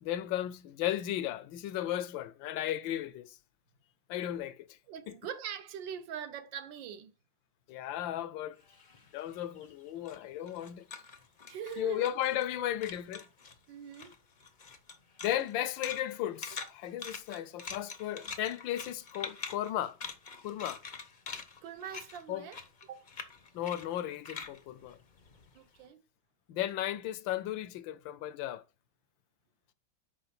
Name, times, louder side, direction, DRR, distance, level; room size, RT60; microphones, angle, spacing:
voice 1, 0.0-3.4 4.1-4.7 5.1-5.2 7.7-8.6 9.1-10.8 11.8-13.3 15.2-20.0 20.4-20.8 22.3-22.5 23.5-25.0 26.5-28.6, left 12 dB, 80° left, 1.3 m, -35 dB
voice 2, 4.9-7.1 11.5-12.1 13.7-14.1 21.6-22.6 22.9-23.0 25.5-26.0, right 8 dB, 75° right, 1.5 m, -42 dB
sound 1, 8.6-12.6 12.8-13.6 13.9-25.7, left 5 dB, 50° left, 0.5 m, -45 dB
6.6 x 5.0 x 5.8 m
omnidirectional pair, 2.1 m